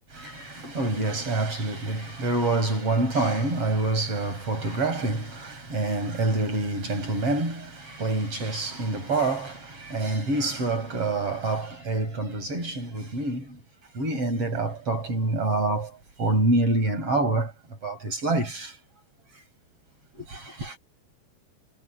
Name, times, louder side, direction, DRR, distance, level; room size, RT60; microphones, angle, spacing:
voice 1, 0.1-13.6 13.9-17.5 17.8-18.8 20.1-20.8, right 2 dB, 30° right, 8.2 m, -27 dB
omnidirectional pair, 5.1 m